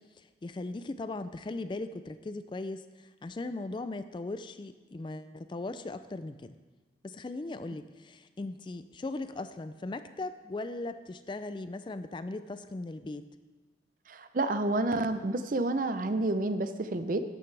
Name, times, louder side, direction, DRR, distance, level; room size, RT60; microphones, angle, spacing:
voice 1, 0.0-6.5 7.0-13.3, left 2 dB, 25° left, 11 dB, 0.3 m, -38 dB
voice 2, 14.1-17.2, right 2 dB, 45° right, 10 dB, 0.6 m, -29 dB
14.0 x 10.0 x 3.3 m, 1.3 s
head